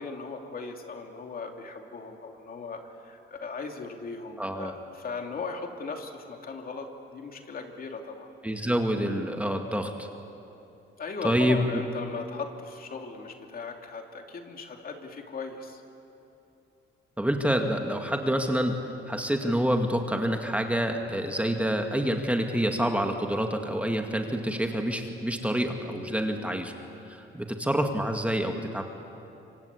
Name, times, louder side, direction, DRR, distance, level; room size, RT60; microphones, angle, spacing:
voice 1, 0.0-8.3 11.0-15.8, left 4 dB, 50° left, 3 dB, 2.9 m, -38 dB
voice 2, 4.4-4.7 8.4-10.1 11.2-11.8 17.2-26.7 27.1-28.8, equal, 5° right, 4 dB, 2.1 m, -27 dB
25.5 x 25.0 x 8.5 m, 2.9 s
cardioid pair, 90°, 20 cm